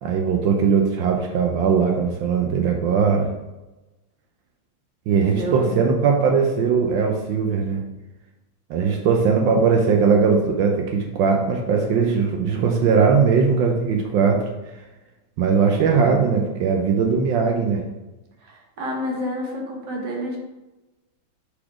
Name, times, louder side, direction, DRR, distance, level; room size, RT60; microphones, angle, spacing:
voice 1, 0.0-3.3 5.1-7.8 8.7-14.5 15.4-17.8, right 5 dB, 80° right, 1 dB, 1.4 m, -19 dB
voice 2, 5.1-5.9 18.4-20.4, equal, 65° right, 0 dB, 1.8 m, -29 dB
5.8 x 4.1 x 5.0 m, 1.1 s
omnidirectional pair, 2.1 m